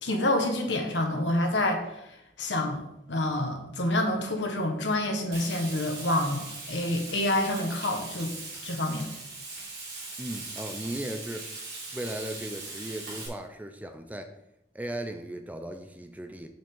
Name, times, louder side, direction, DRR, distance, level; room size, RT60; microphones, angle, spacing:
voice 1, 0.0-8.3 8.6-9.1, left 1 dB, 80° left, 4 dB, 1.4 m, -28 dB
Frying (food), 5.3-13.3, right 3 dB, 60° right, 3.5 m, -40 dB
voice 2, 10.2-11.5 11.9-14.3 14.7-16.5, right 1 dB, 10° right, 6 dB, 0.5 m, -37 dB
7.5 x 7.2 x 3.8 m, 0.85 s
head